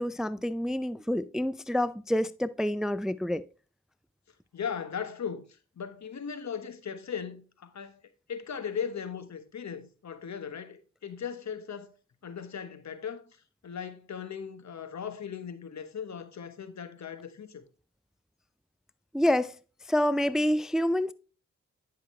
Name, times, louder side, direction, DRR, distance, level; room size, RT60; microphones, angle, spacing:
voice 1, 0.0-3.4 19.1-19.6 19.9-21.1, left 1 dB, ahead, 0.4 m, -27 dB
voice 2, 4.5-5.4 5.8-8.0 8.3-11.9 12.2-13.3 13.6-17.6, left 7 dB, 65° left, 1.2 m, -38 dB
10.0 x 6.4 x 3.1 m
supercardioid pair, 40°, 29 cm